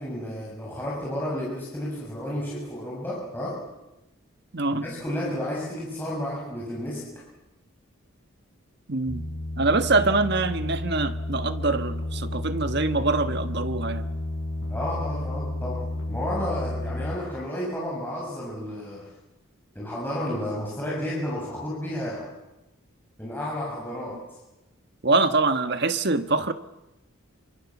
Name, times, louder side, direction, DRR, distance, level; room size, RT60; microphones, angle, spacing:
voice 1, 0.0-3.6 4.7-7.0 14.7-19.1 19.7-22.3 23.2-24.2, left 1 dB, 10° left, -5 dB, 6.8 m, -32 dB
voice 2, 4.5-4.9 8.9-9.2 9.6-14.1 25.0-26.5, right 3 dB, 50° right, 10 dB, 1.4 m, -24 dB
sound 1, 9.1-17.2, left 1 dB, 75° left, 6.9 m, -31 dB
28.5 x 26.0 x 7.3 m, 0.95 s
head